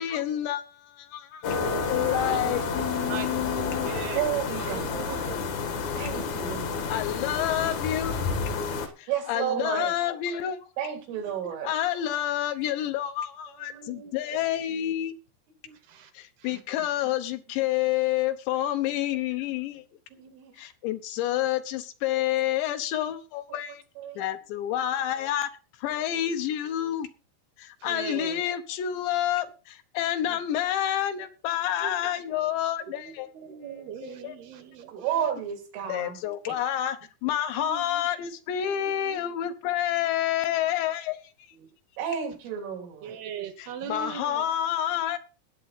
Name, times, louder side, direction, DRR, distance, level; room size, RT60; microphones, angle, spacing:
voice 1, 0.0-1.5 1.9-3.9 6.9-8.2 9.0-10.7 11.6-15.1 16.1-19.8 20.5-23.8 24.2-25.5 25.8-27.1 27.6-33.3 34.0-34.4 35.8-37.0 37.2-41.2 43.6-45.2, left 12 dB, 75° left, 3.0 m, -29 dB
sound 1, 1.4-8.9, left 5 dB, 60° left, 2.0 m, -30 dB
voice 2, 1.5-2.6 3.0-5.5 6.5-6.7 6.9-7.2 8.6-8.9 9.3-9.4 11.2-11.3 13.7-14.2 15.6-16.1 16.4-16.6 27.8-28.4 30.2-30.4 31.1-31.3 31.8-31.9 32.8-35.3 37.6-38.8 39.0-39.3 41.6-41.7 43.0-44.5, right 8 dB, 70° right, 2.5 m, -41 dB
voice 3, 4.2-5.3 6.0-6.9 9.1-9.9 10.8-11.7 20.1-20.5 24.0-24.3 34.9-36.1 42.0-43.2, right 9 dB, 90° right, 5.6 m, -32 dB
19.0 x 7.7 x 4.2 m
omnidirectional pair, 5.5 m